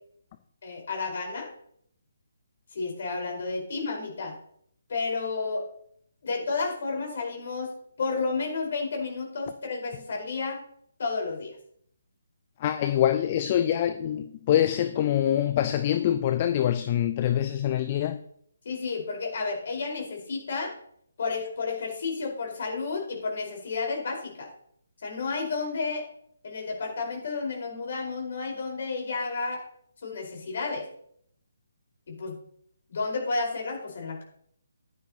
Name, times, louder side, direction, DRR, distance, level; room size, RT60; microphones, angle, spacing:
voice 1, 0.6-1.5 2.7-4.3 4.9-5.6 6.2-10.6 11.0-11.5 18.6-20.7 21.2-24.5 25.0-26.0 26.4-29.6 30.0-30.8 32.1-32.4 32.9-34.2, left 4 dB, 45° left, 4.7 m, -31 dB
voice 2, 12.6-18.2, left 11 dB, 30° left, 0.6 m, -25 dB
15.5 x 11.0 x 2.9 m
figure-of-eight pair, 140°, 0 cm